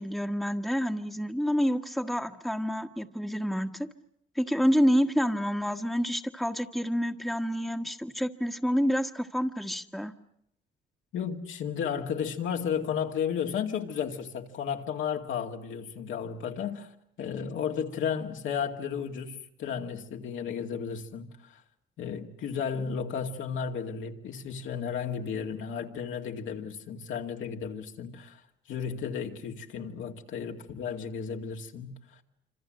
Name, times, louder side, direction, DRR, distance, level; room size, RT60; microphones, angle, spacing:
voice 1, 0.0-3.9 4.3-10.1, equal, ahead, 1.4 m, -28 dB
voice 2, 11.1-16.9 17.2-21.6 22.0-28.4 28.7-31.9, left 7 dB, 75° left, 2.3 m, -33 dB
26.0 x 26.0 x 7.7 m
cardioid pair, 90°, 20 cm